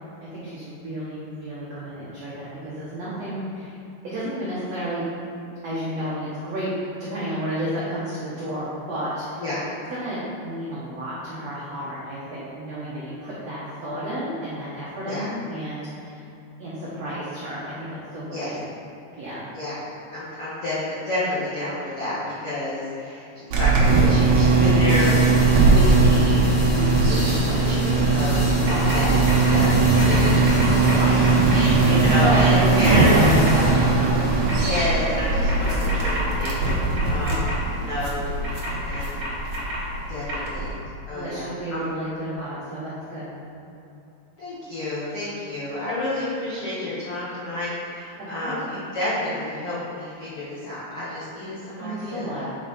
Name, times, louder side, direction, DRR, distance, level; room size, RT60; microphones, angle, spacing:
voice 1, 0.3-3.7 4.0-5.0 5.6-6.7 7.1-9.4 9.9-16.2 16.6-18.7 19.1-19.5 28.6-29.4 32.2-34.2 37.2-37.5 41.1-43.5 48.4-48.6 51.8-52.5, equal, 90° right, -9 dB, 1.4 m, -31 dB
voice 2, 20.1-25.1 25.7-28.4 28.6-29.1 29.5-33.3 34.6-37.5 37.8-38.3 38.8-39.3 40.1-40.7 41.1-41.9 44.4-52.4, left 1 dB, 90° left, -11 dB, 1.2 m, -30 dB
sound 1, 23.5-40.7, right 3 dB, 70° right, 1.7 m, -19 dB
sound 2, 24.9-34.7, left 3 dB, 70° left, 2.3 m, -36 dB
sound 3, 28.7-29.0 29.3-29.5 30.0-31.6 32.1-32.4 32.8-33.5 34.5-34.8 35.5-37.5 38.4-39.8 40.3-40.4, right 1 dB, 45° right, 1.8 m, -31 dB
8.7 x 5.1 x 4.2 m, 2.8 s
omnidirectional pair, 5.1 m